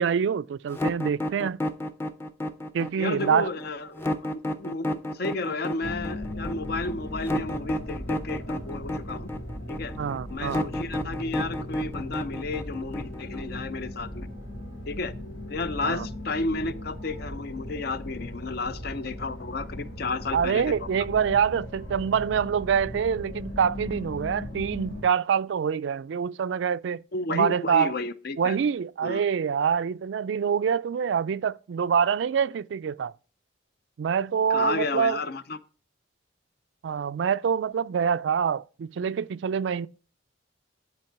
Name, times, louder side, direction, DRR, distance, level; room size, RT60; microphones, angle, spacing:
voice 1, 0.0-1.6 2.7-3.5 10.0-10.7 15.8-16.1 20.3-27.0 27.3-27.9 28.4-33.1 34.0-35.2 36.8-39.9, right 7 dB, 70° right, 0.3 m, -25 dB
sound 1, 0.7-13.6, left 1 dB, 15° left, 0.6 m, -31 dB
voice 2, 3.0-9.3 9.7-9.9 10.3-14.3 14.9-15.1 15.5-20.9 27.1-28.6 29.0-29.2 34.5-35.6, left 3 dB, 55° left, 0.6 m, -32 dB
sound 2, 5.8-25.0, left 1 dB, 85° left, 3.8 m, -38 dB
10.5 x 4.6 x 4.6 m
head